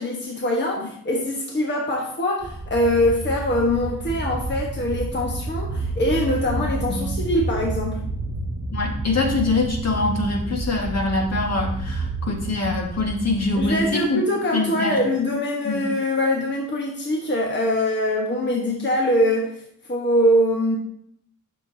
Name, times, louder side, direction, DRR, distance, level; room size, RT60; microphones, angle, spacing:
voice 1, 0.0-8.1 13.5-19.6 19.9-20.8, left 1 dB, 35° left, -1 dB, 1.3 m, -23 dB
sound 1, 2.4-13.8, right 2 dB, 40° right, 1.7 m, -29 dB
voice 2, 6.6-7.1 8.7-14.2 14.5-15.0 15.7-15.8, left 3 dB, 55° left, 0 dB, 1.8 m, -24 dB
10.5 x 6.8 x 2.8 m, 0.69 s
wide cardioid pair, 110°, 31 cm